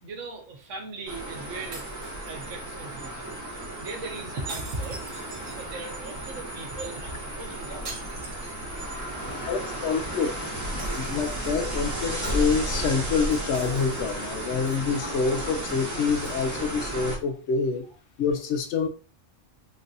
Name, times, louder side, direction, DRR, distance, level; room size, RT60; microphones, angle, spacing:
voice 1, 0.0-3.3 3.8-5.1 5.5-8.3 9.1-9.3, right 3 dB, 80° right, 1.2 m, -39 dB
sound 1, 1.1-17.2, right 1 dB, 20° right, 0.7 m, -34 dB
sound 2, 1.7-2.8 4.5-6.1 7.9-9.1 9.4-9.5 10.8-11.9 13.5-14.5, right 3 dB, 60° right, 1.0 m, -44 dB
Toilet flush, 7.5-16.6, equal, 40° left, 1.4 m, -42 dB
voice 2, 9.4-10.3 10.9-17.9 18.2-18.9, left 5 dB, 70° left, 0.9 m, -27 dB
3.7 x 2.5 x 2.7 m
omnidirectional pair, 1.3 m